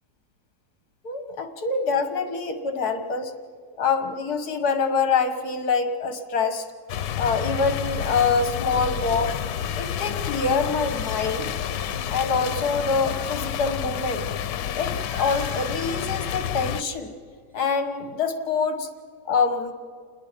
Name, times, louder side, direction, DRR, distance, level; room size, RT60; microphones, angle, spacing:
voice 1, 1.0-3.3 3.8-6.7 7.2-9.4 9.8-11.6 12.1-14.3 14.7-17.1 17.5-18.9 19.3-19.7, left 4 dB, 60° left, 7 dB, 2.0 m, -25 dB
sound 1, 6.9-16.8, left 9 dB, 80° left, 1.4 m, -29 dB
sound 2, 9.3-11.5 11.9-12.3 15.0-16.5 16.8-17.2 17.5-17.8, right 1 dB, 40° right, 5.8 m, -47 dB
29.0 x 20.0 x 5.2 m, 2.2 s
omnidirectional pair, 1.9 m